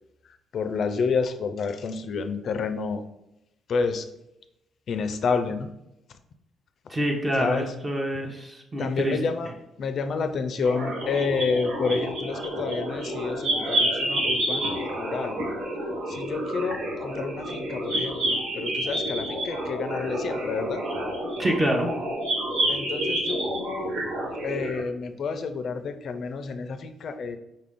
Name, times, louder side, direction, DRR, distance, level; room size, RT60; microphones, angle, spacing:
voice 1, 0.5-3.0 3.7-4.0 4.9-5.7 7.4-7.7 8.8-9.5 9.8-15.4 16.1-20.8 22.7-23.9 24.4-27.4, left 5 dB, 60° left, 9 dB, 0.4 m, -29 dB
voice 2, 6.9-9.2 12.5-12.6 21.4-21.9, right 1 dB, 25° right, 1 dB, 0.8 m, -26 dB
sound 1, 10.6-24.8, right 1 dB, 85° right, 1.1 m, -29 dB
5.3 x 2.5 x 3.5 m, 0.87 s
cardioid pair, 90°, 0 cm